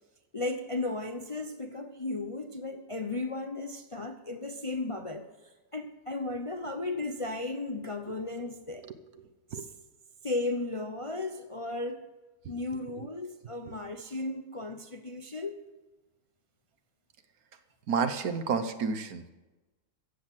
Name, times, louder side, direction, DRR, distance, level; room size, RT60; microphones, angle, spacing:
voice 1, 0.3-5.3 5.7-8.9 9.5-9.7 10.2-12.0 12.5-15.6, left 2 dB, 35° left, 6 dB, 0.5 m, -35 dB
voice 2, 17.9-19.2, right 5 dB, 70° right, 10 dB, 1.4 m, -30 dB
15.0 x 8.0 x 7.5 m, 1.1 s
omnidirectional pair, 1.6 m